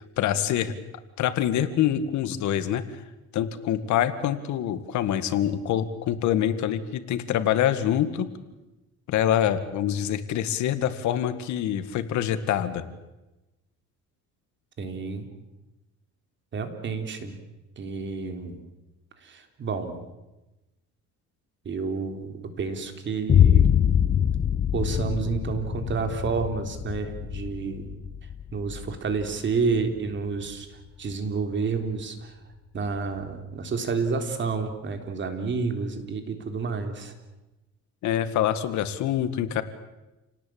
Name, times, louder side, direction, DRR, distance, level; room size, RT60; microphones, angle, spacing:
voice 1, 0.2-0.7 1.2-3.0 3.3-8.3 9.1-12.8 38.0-39.6, left 10 dB, 70° left, 12 dB, 2.0 m, -25 dB
voice 2, 14.8-15.3 16.5-17.4 17.8-18.6 19.2-20.0 21.7-23.9 24.7-27.9 28.5-30.7 31.0-32.4 32.7-37.1, right 4 dB, 40° right, 6 dB, 3.6 m, -30 dB
Boom, 23.3-31.1, left 9 dB, 30° left, 0.8 m, -24 dB
29.5 x 18.5 x 8.8 m, 1.0 s
cardioid pair, 135°, 30 cm